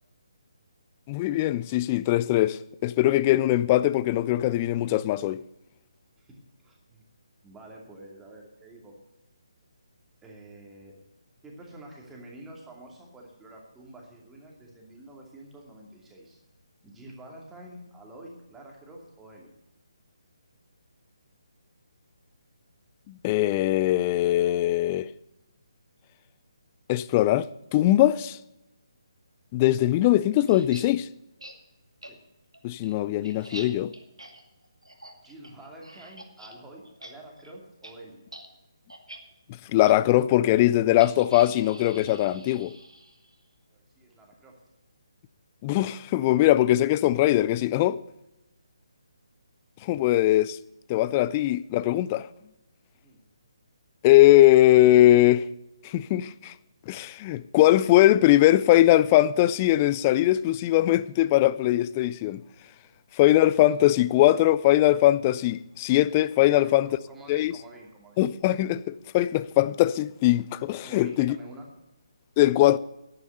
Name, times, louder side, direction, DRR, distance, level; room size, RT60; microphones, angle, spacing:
voice 1, 1.1-5.4 23.1-25.1 26.9-28.4 29.5-31.1 32.6-33.9 39.7-42.7 45.6-48.0 49.8-50.6 50.9-52.3 54.0-55.5 55.8-56.5 56.9-62.4 63.2-66.9 67.3-67.5 68.2-71.4 72.4-72.8, left 15 dB, 20° left, 0.4 m, -21 dB
voice 2, 6.2-7.0 7.4-9.0 10.2-11.0 11.4-16.4 16.8-19.5 32.0-32.2 35.2-38.2 43.7-44.6 52.9-53.2 59.8-59.9 66.4-68.2 70.8-71.7, right 1 dB, 10° right, 2.5 m, -48 dB
sound 1, 30.5-30.8 31.4-31.5 32.0-32.1 32.5-36.5 36.8-37.1 37.4-37.5 37.8-37.9 38.3-38.5 38.9-39.2 39.8-39.9 41.0-43.3, right 1 dB, 85° right, 2.2 m, -45 dB
10.5 x 9.8 x 7.9 m
figure-of-eight pair, 145°, 3 cm